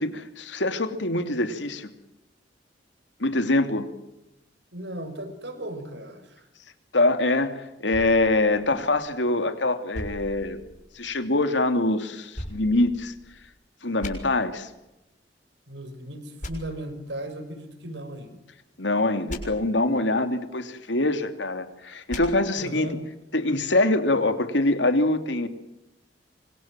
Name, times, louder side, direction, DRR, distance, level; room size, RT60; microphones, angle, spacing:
voice 1, 0.0-1.9 3.2-3.9 6.9-10.6 10.9-13.1 13.8-14.7 18.8-23.0 23.3-25.5, left 2 dB, 90° left, 8 dB, 3.0 m, -24 dB
voice 2, 4.7-6.5 15.7-18.4 22.6-23.0, right 1 dB, 75° right, 9 dB, 5.8 m, -36 dB
sound 1, 7.9-9.3 9.9-11.2 12.3-13.5 14.0-14.1 16.4-16.5 19.3-19.4 22.1-22.2, left 1 dB, 45° left, 6.7 m, -39 dB
26.5 x 25.5 x 7.6 m, 0.94 s
head